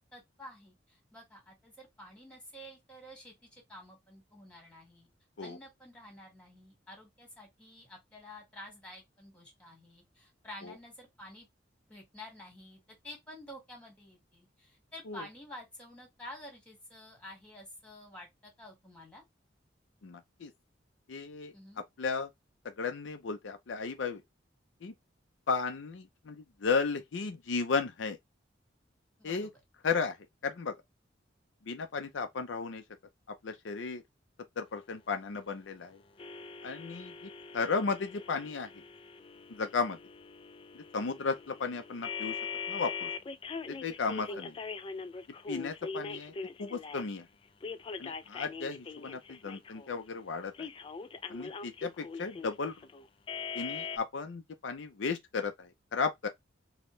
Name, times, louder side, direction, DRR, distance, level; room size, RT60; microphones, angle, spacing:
voice 1, 0.1-5.1 5.4-11.5 11.9-19.2 21.5-21.8 29.2-29.5 44.2-44.5 45.5-45.7, left 1 dB, 5° left, 1.7 m, -50 dB
voice 2, 20.0-20.5 21.1-21.5 22.0-22.3 22.8-24.2 24.8-24.9 25.5-28.2 29.2-29.5 29.8-30.2 30.4-30.8 31.7-32.8 33.4-34.0 34.6-36.0 36.6-37.1 37.5-38.7 39.5-40.0 40.7-42.4 42.7-43.1 43.8-44.5 45.5-46.3 46.6-47.2 48.0-50.7 51.3-52.7 53.5-56.3, left 4 dB, 80° left, 0.5 m, -34 dB
sound 1, 36.2-47.1 47.6-50.0 50.5-54.0, left 5 dB, 30° left, 0.3 m, -42 dB
4.3 x 2.2 x 3.1 m
head